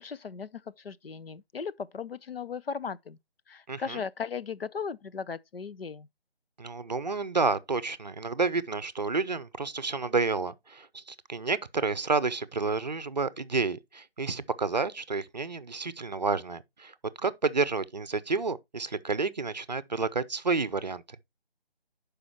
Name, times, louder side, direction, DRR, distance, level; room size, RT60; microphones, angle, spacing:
voice 1, 0.0-3.2 3.5-6.1, left 6 dB, 70° left, 0.5 m, -37 dB
voice 2, 3.7-4.0 6.6-21.0, right 4 dB, 45° right, 0.6 m, -30 dB
11.0 x 4.9 x 2.9 m
figure-of-eight pair, 155°, 31 cm